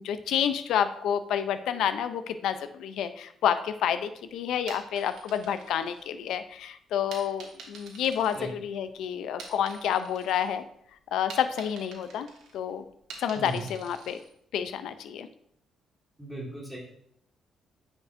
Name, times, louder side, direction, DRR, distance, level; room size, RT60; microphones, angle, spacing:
voice 1, 0.0-10.6 11.1-12.3 12.5-12.8 13.2-14.2 14.5-15.3, left 9 dB, 80° left, 11 dB, 0.4 m, -29 dB
sound 1, 4.5-6.5 7.1-8.9 9.2-10.5 10.9-14.3, right 4 dB, 85° right, 1.4 m, -47 dB
voice 2, 16.2-16.8, right 2 dB, 10° right, -2 dB, 1.6 m, -37 dB
9.4 x 5.2 x 2.5 m, 0.69 s
cardioid pair, 90°, 0 cm